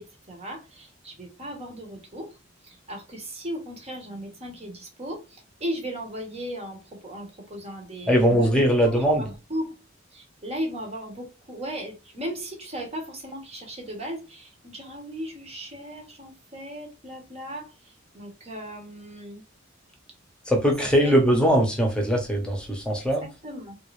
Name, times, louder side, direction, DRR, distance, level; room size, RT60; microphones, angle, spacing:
voice 1, 0.0-2.4 2.6-9.8 10.1-19.4 20.6-21.5 23.2-23.8, equal, 30° right, 1.1 m, -37 dB
voice 2, 8.1-9.2 20.5-23.2, equal, 5° left, 1.0 m, -21 dB
3.7 x 2.5 x 3.2 m
head